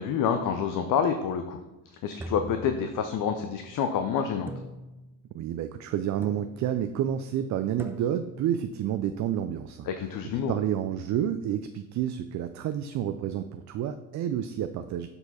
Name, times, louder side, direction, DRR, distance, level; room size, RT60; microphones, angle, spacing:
voice 1, 0.0-1.6 2.0-4.5 9.9-10.6, left 7 dB, 50° left, 7 dB, 0.6 m, -28 dB
sound 1, 2.2-3.4 4.5-5.3 6.2-6.8 7.8-8.5, right 1 dB, 5° right, 0.7 m, -42 dB
voice 2, 5.3-9.9 10.5-15.1, right 10 dB, 45° right, 9 dB, 0.4 m, -29 dB
6.8 x 4.5 x 4.2 m, 1.0 s
hypercardioid pair, 65°, 41 cm